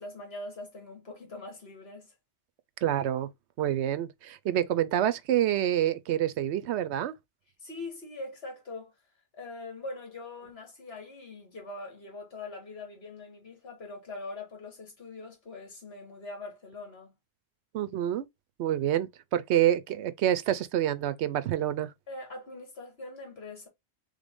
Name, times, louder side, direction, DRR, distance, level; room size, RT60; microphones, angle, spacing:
voice 1, 0.0-2.1 7.6-8.9 9.4-17.1 22.1-23.7, left 2 dB, 65° left, 1.9 m, -42 dB
voice 2, 2.8-3.3 3.6-7.1 17.7-18.3 18.6-21.9, right 11 dB, 75° right, 0.8 m, -27 dB
3.7 x 3.5 x 3.5 m
omnidirectional pair, 1.2 m